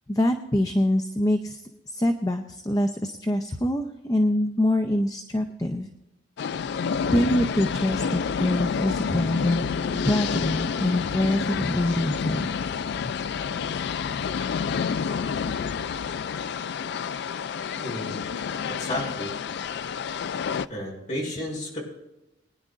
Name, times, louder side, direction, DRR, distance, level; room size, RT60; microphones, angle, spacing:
voice 1, 0.1-5.9 7.1-9.7 9.9-12.5 13.0-13.2, left 1 dB, 20° left, 6 dB, 0.6 m, -25 dB
sound 1, 6.4-20.7, left 6 dB, 55° left, 0.3 m, -29 dB
voice 2, 17.8-19.4 20.7-21.8, left 1 dB, 40° left, -3 dB, 5.3 m, -33 dB
23.0 x 10.0 x 2.5 m, 0.94 s
head